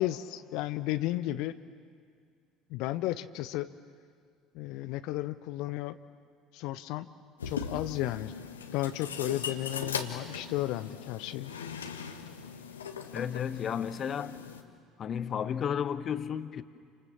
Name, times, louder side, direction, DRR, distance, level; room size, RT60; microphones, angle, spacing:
voice 1, 0.0-1.6 2.7-3.7 4.5-6.0 6.5-7.1 7.4-8.3 8.7-11.5, left 15 dB, 55° left, 12 dB, 0.8 m, -33 dB
sound 1, 7.4-14.6, left 6 dB, 75° left, 1.6 m, -39 dB
voice 2, 13.1-14.3 15.0-16.6, left 8 dB, 40° left, 13 dB, 1.2 m, -32 dB
29.0 x 27.0 x 7.4 m, 2.2 s
figure-of-eight pair, 60°, 0 cm